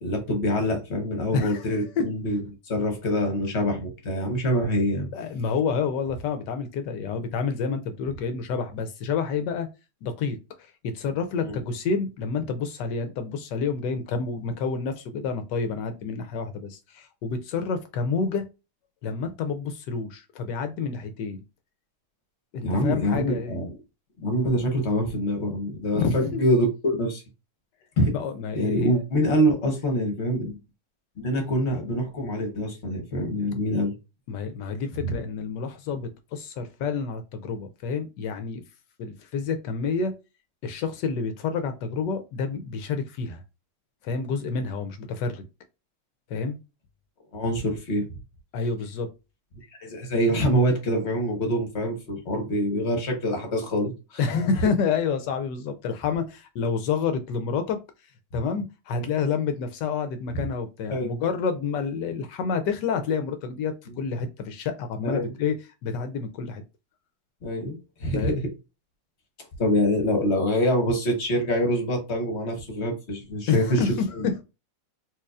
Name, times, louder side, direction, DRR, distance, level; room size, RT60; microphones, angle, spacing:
voice 1, 0.0-2.4 2.7-5.1 11.4-11.6 22.6-23.8 24.2-27.2 28.0-28.1 28.5-30.5 31.2-33.9 35.0-35.2 47.3-48.1 49.7-54.4 58.9-59.1 60.3-60.4 60.9-61.1 65.0-65.3 67.4-68.5 69.6-73.9 74.1-74.3, equal, 45° left, 0.9 m, -25 dB
voice 2, 1.3-2.1 5.1-9.7 10.0-18.4 19.0-21.4 22.5-23.6 26.0-26.4 28.1-28.9 34.3-38.6 39.0-40.1 40.6-43.4 44.0-45.4 46.3-46.6 48.5-49.1 54.2-57.8 58.3-65.5 65.8-66.6 68.1-68.4 73.5-74.4, left 5 dB, 75° left, 1.0 m, -29 dB
4.5 x 2.7 x 2.4 m
omnidirectional pair, 2.3 m